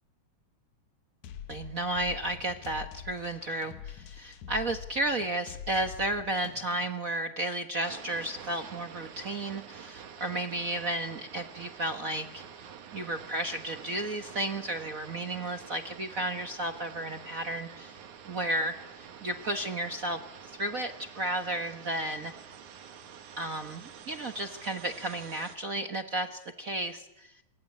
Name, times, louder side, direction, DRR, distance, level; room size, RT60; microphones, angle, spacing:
sound 1, 1.2-6.9, left 9 dB, 75° left, 2.4 m, -45 dB
voice 1, 1.5-12.4 12.9-18.0 18.2-22.3 23.4-27.3, right 1 dB, 60° right, 7 dB, 0.8 m, -33 dB
sound 2, 7.8-25.6, right 7 dB, 75° right, 3.2 m, -48 dB
27.0 x 22.0 x 9.8 m, 0.95 s
omnidirectional pair, 3.4 m